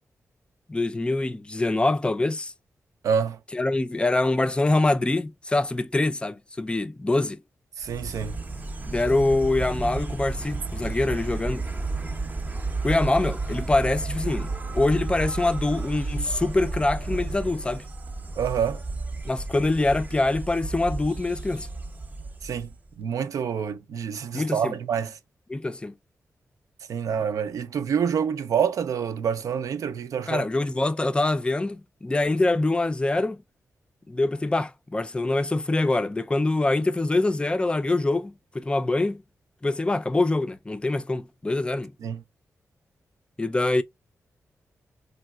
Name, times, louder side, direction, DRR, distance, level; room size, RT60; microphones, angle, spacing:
voice 1, 0.7-2.5 3.5-7.4 8.9-11.7 12.8-17.8 19.2-21.7 24.3-24.8 25.5-25.9 30.3-33.4 34.1-39.2 39.6-41.9 43.4-43.8, left 2 dB, 20° left, 0.4 m, -24 dB
voice 2, 3.0-3.4 7.8-8.4 18.4-18.8 22.4-22.7 23.0-25.1 26.9-30.4 42.0-42.2, right 7 dB, 90° right, 0.5 m, -27 dB
Insect, 7.8-22.9, right 3 dB, 30° right, 0.6 m, -32 dB
3.3 x 2.7 x 2.3 m
wide cardioid pair, 100°, 6 cm